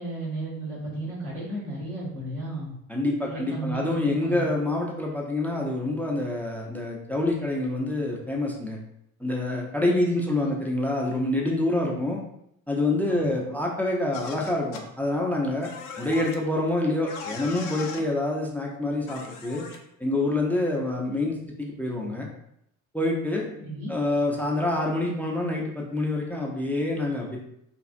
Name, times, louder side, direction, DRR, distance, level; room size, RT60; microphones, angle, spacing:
voice 1, 0.0-2.7 3.3-4.4 10.1-10.2 10.4-10.5 13.1-13.6 23.6-23.9, right 1 dB, 85° right, -7 dB, 1.3 m, -34 dB
voice 2, 2.9-8.8 9.2-12.2 12.7-15.7 16.0-19.6 20.0-22.3 22.9-23.5 23.9-27.4, left 2 dB, 5° left, -1 dB, 0.4 m, -26 dB
sound 1, 14.1-14.8 15.6-16.4 17.1-18.0 19.1-19.8, left 5 dB, 65° left, 0.6 m, -38 dB
3.2 x 2.4 x 2.5 m, 0.76 s
figure-of-eight pair, 60°, 42 cm